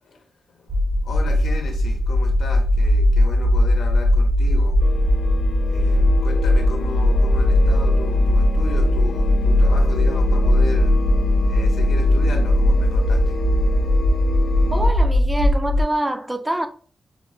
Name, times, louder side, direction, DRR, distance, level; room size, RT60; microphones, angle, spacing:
voice 1, 0.0-4.8 5.7-11.0 11.4-13.4, left 3 dB, 85° left, 0.9 m, -35 dB
sound 1, 0.7-15.8, left 1 dB, 55° right, 0.6 m, -18 dB
sound 2, 4.8-14.9, left 4 dB, 65° left, 0.5 m, -32 dB
voice 2, 14.7-16.7, right 1 dB, 10° right, 0.3 m, -25 dB
6.0 x 2.1 x 2.4 m
wide cardioid pair, 140°, 0 cm